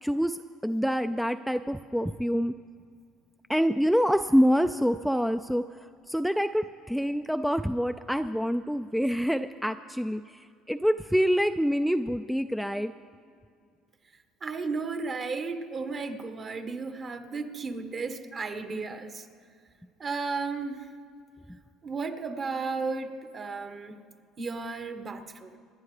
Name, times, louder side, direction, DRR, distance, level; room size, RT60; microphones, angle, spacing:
voice 1, 0.0-2.5 3.5-5.7 6.1-10.2 10.7-12.9, equal, ahead, 10 dB, 0.3 m, -26 dB
voice 2, 14.4-19.3 20.0-20.9 21.8-24.0 24.4-25.5, right 4 dB, 40° right, 7 dB, 1.4 m, -34 dB
27.0 x 10.0 x 3.3 m, 2.3 s
supercardioid pair, 85°, 0 cm